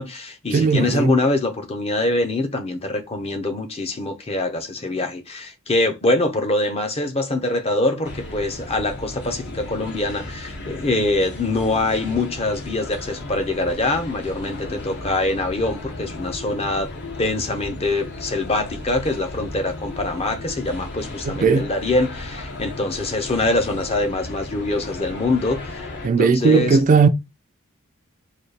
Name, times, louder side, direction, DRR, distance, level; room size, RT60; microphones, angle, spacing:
voice 1, 0.0-16.9 17.2-25.9 26.2-26.8, left 2 dB, 30° left, 0.6 m, -24 dB
voice 2, 0.5-1.1 21.3-21.7 26.0-27.1, right 5 dB, 40° right, 0.3 m, -17 dB
sound 1, 8.0-26.1, left 2 dB, 55° left, 0.9 m, -35 dB
4.0 x 2.3 x 3.2 m
head